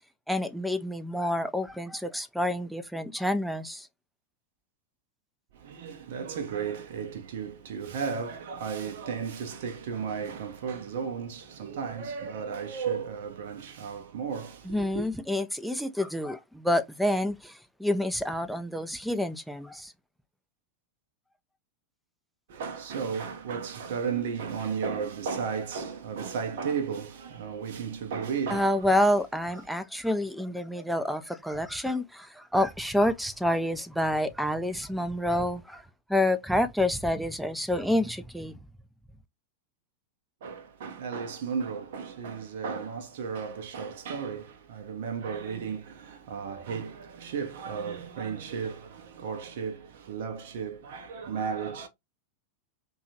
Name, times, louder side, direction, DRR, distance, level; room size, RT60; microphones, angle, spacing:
voice 1, 0.3-3.9 14.6-19.9 28.5-35.8 36.1-38.5, left 1 dB, ahead, 0.4 m, -28 dB
voice 2, 5.5-15.0 22.5-29.0 40.4-51.9, right 6 dB, 55° right, 0.6 m, -34 dB
2.7 x 2.3 x 2.7 m
figure-of-eight pair, 90°, 0 cm